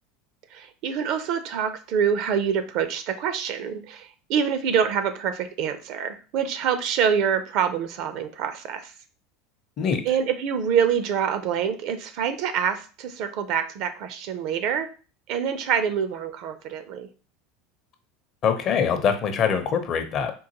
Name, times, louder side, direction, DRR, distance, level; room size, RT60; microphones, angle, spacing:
voice 1, 0.5-8.9 10.0-14.9 15.3-17.1, right 7 dB, 60° right, 10 dB, 0.5 m, -26 dB
voice 2, 18.4-20.3, left 7 dB, 45° left, 7 dB, 0.6 m, -23 dB
3.7 x 2.5 x 2.9 m, 0.36 s
supercardioid pair, 100°, 0 cm